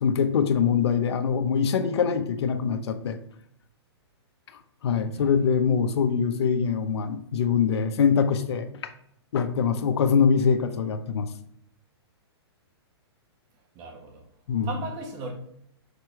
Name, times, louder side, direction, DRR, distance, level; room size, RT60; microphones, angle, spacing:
voice 1, 0.0-3.2 4.8-8.7 9.3-11.3 14.5-14.7, left 6 dB, 70° left, 8 dB, 0.9 m, -23 dB
voice 2, 13.7-14.2 14.6-15.3, right 3 dB, 30° right, 2 dB, 1.5 m, -37 dB
6.6 x 4.5 x 3.2 m, 0.72 s
hypercardioid pair, 150°, 14 cm